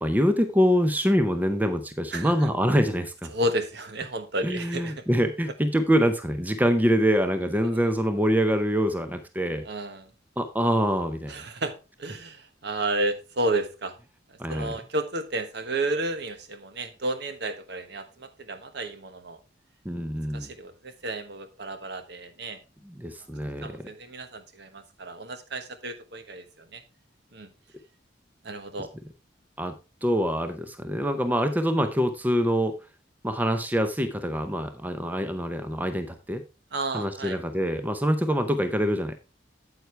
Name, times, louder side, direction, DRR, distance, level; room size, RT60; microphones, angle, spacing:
voice 1, 0.0-3.3 4.4-9.6 10.4-11.3 14.4-14.8 19.8-20.5 22.9-23.9 29.6-29.7 30.0-32.8 33.2-36.4 36.9-39.2, equal, 10° right, 9 dB, 0.6 m, -25 dB
voice 2, 2.1-2.5 3.3-5.0 7.6-7.9 9.6-10.1 11.3-13.9 14.3-19.4 20.3-22.6 23.6-26.8 27.3-27.5 28.4-28.9 36.7-37.4, right 2 dB, 60° right, 9 dB, 1.2 m, -32 dB
9.1 x 8.0 x 3.3 m, 0.28 s
head